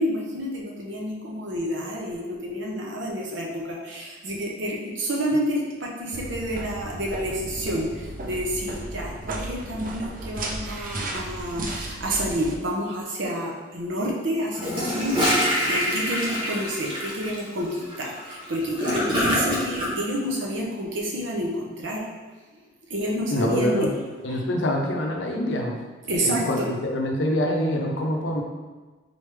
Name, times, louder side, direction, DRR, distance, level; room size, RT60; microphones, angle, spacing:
voice 1, 0.0-22.1 22.9-23.9 24.3-24.7 26.0-26.7, equal, 75° right, -2 dB, 0.8 m, -29 dB
sound 1, 6.1-12.5, right 2 dB, 45° right, 0.4 m, -34 dB
Gurgling / Toilet flush, 14.5-19.9, equal, 25° right, 0.8 m, -25 dB
voice 2, 23.3-23.9 24.2-25.8 26.2-28.4, left 1 dB, 70° left, 1 dB, 0.6 m, -25 dB
4.0 x 3.3 x 3.4 m, 1.3 s
head